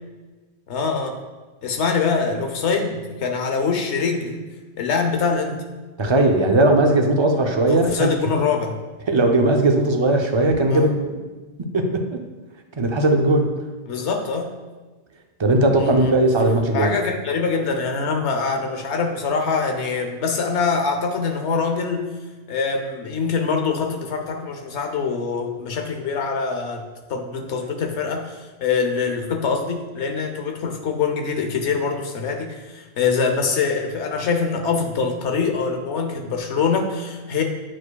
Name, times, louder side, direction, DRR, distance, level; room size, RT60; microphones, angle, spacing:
voice 1, 0.7-1.2 1.6-4.4 4.8-5.6 7.7-8.8 10.7-10.9 13.9-14.5 15.8-16.1 16.7-22.1 22.5-26.8 27.1-37.4, left 5 dB, 85° left, 3 dB, 1.1 m, -24 dB
voice 2, 6.0-8.3 9.1-11.2 11.7-12.2 12.8-13.5 15.4-16.9, right 2 dB, 35° right, 3 dB, 0.4 m, -18 dB
8.7 x 4.7 x 2.3 m, 1.3 s
omnidirectional pair, 1.1 m